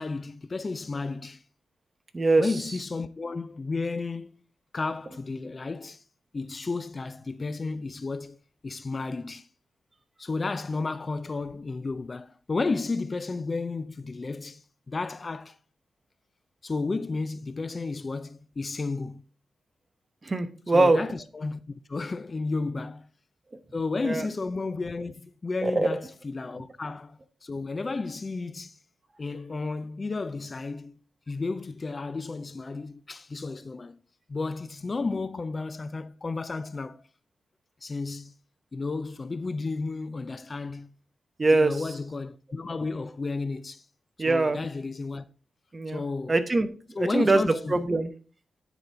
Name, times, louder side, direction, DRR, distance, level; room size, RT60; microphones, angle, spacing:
voice 1, 0.0-1.4 2.4-4.4 4.7-6.0 6.3-8.4 8.6-9.5 10.2-15.6 16.6-19.2 20.7-23.1 23.7-28.8 29.2-30.9 31.3-34.0 34.3-37.0 37.8-38.3 38.7-40.9 41.5-43.8 44.3-45.2 45.9-46.4 47.0-47.8, left 3 dB, 35° left, 0.4 m, -32 dB
voice 2, 2.1-2.5 20.2-21.0 24.0-24.3 25.6-26.0 41.4-41.8 44.2-44.6 45.7-46.0 46.3-46.7 47.0-48.1, right 2 dB, 30° right, 0.9 m, -23 dB
9.7 x 4.2 x 4.6 m
cardioid pair, 100°, 0 cm